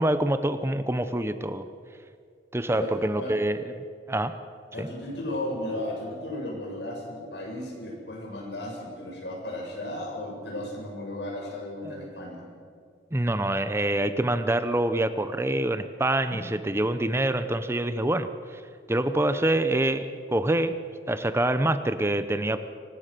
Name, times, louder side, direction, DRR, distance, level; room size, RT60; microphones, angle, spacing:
voice 1, 0.0-1.6 2.5-3.6 4.1-4.4 4.8-4.9 11.8-11.9 13.1-18.6 18.9-20.8 21.1-22.6, right 1 dB, 15° right, 11 dB, 0.7 m, -26 dB
voice 2, 2.7-3.3 4.7-12.4, left 1 dB, 80° left, -1 dB, 7.7 m, -35 dB
24.5 x 19.0 x 6.7 m, 2.3 s
head